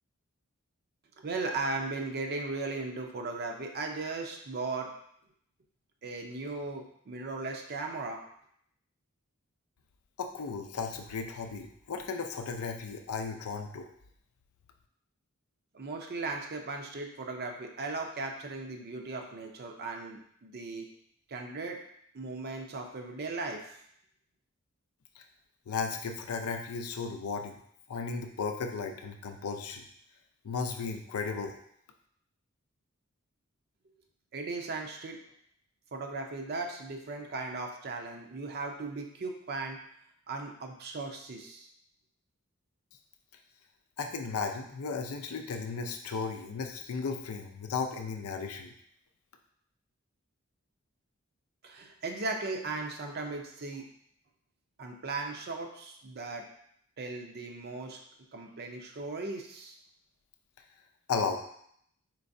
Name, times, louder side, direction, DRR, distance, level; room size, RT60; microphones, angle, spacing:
voice 1, 1.2-4.9 6.0-8.2 15.7-20.9 21.3-21.8 22.1-23.8 34.3-35.2 35.9-39.8 40.3-41.7 51.6-53.9 54.8-56.5 57.0-58.0 58.3-59.8, right 3 dB, 45° right, 3 dB, 0.6 m, -37 dB
voice 2, 10.2-13.9 25.2-25.3 25.7-27.5 27.9-29.8 30.4-31.6 44.0-48.7 61.1-61.4, left 5 dB, 85° left, 4 dB, 0.5 m, -35 dB
4.6 x 3.2 x 2.6 m, 0.69 s
head